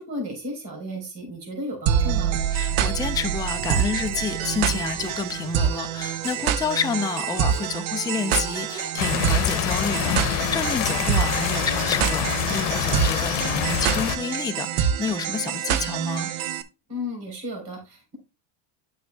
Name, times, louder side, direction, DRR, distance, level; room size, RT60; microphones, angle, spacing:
voice 1, 0.0-2.3 16.9-18.2, left 1 dB, 55° right, 4.1 m, -34 dB
sound 1, 1.9-16.6, right 9 dB, 80° right, 0.8 m, -26 dB
voice 2, 2.5-16.3, left 6 dB, 10° left, 0.5 m, -29 dB
sound 2, 3.7-4.0 5.0-5.2 6.2-6.5 7.5-7.7 8.7-8.9 9.9-10.1 10.6-10.7, equal, 10° right, 2.3 m, -42 dB
sound 3, 9.0-14.2, left 12 dB, 90° left, 0.8 m, -26 dB
9.4 x 6.7 x 2.3 m
cardioid pair, 115°, 48 cm